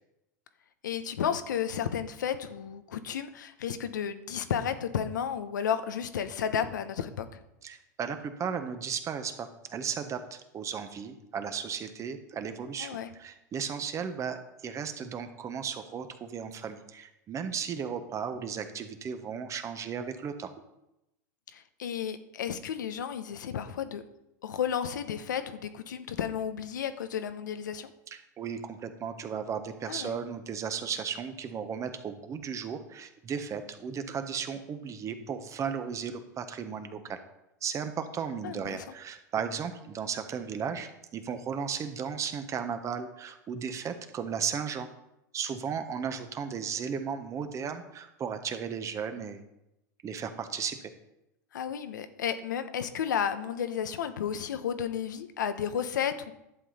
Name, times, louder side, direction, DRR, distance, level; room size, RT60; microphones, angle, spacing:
voice 1, 0.8-7.4 12.8-13.1 21.5-24.0 24.4-27.9 29.9-30.1 38.4-38.9 51.5-56.3, left 8 dB, 85° left, 10 dB, 0.9 m, -32 dB
voice 2, 7.6-20.5 28.4-37.2 37.6-44.9 45.3-49.4 50.0-50.9, right 7 dB, 30° right, 8 dB, 1.2 m, -35 dB
11.5 x 7.5 x 4.3 m, 0.89 s
hypercardioid pair, 100°, 10 cm